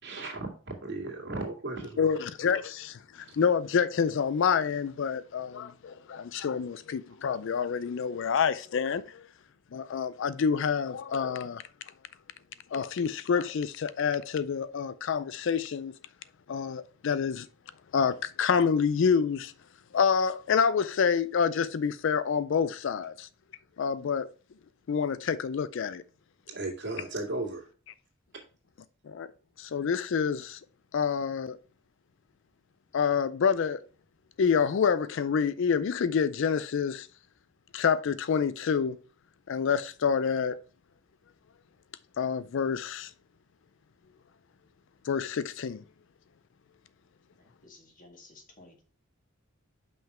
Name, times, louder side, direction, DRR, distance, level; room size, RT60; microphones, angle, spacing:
voice 1, 0.0-2.2 26.5-27.7 28.3-28.4, right 2 dB, 60° right, 2.1 m, -36 dB
voice 2, 2.0-9.3 9.7-11.6 12.7-15.9 16.5-17.5 17.9-19.5 19.9-23.3 23.8-24.3 24.9-26.0 29.1-29.3 29.6-30.6 30.9-31.6 32.9-33.8 34.4-37.1 37.7-39.0 39.5-40.6 42.2-43.1 45.0-45.8, left 6 dB, 65° left, 0.4 m, -27 dB
voice 3, 47.4-48.8, left 2 dB, 40° left, 1.9 m, -54 dB
5.7 x 5.5 x 4.3 m
head